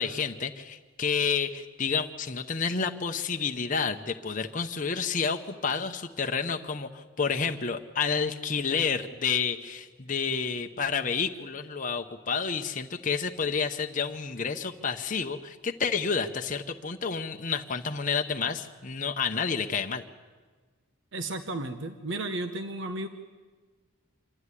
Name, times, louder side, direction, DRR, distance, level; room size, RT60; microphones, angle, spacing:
voice 1, 0.0-20.0, left 5 dB, 35° left, 5 dB, 0.8 m, -30 dB
voice 2, 21.1-23.1, right 2 dB, 55° right, 7 dB, 0.9 m, -33 dB
26.0 x 12.5 x 9.8 m, 1.4 s
head